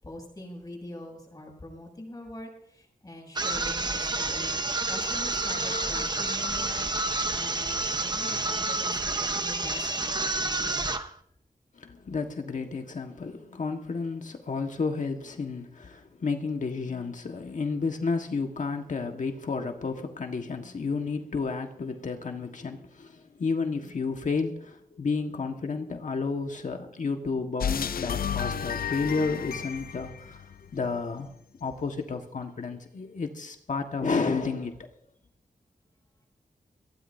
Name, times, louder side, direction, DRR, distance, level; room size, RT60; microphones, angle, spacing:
voice 1, 0.0-6.9 7.3-10.9, left 1 dB, 25° left, 0 dB, 6.9 m, -44 dB
sound 1, 3.3-11.1, right 2 dB, 30° right, 1.0 m, -29 dB
voice 2, 11.8-30.4 30.7-31.3 31.6-34.8, left 4 dB, 60° left, 4 dB, 1.5 m, -31 dB
sound 2, 27.6-31.0, left 8 dB, 85° left, 0.6 m, -32 dB
23.0 x 16.5 x 2.7 m, 0.68 s
wide cardioid pair, 110°, 15 cm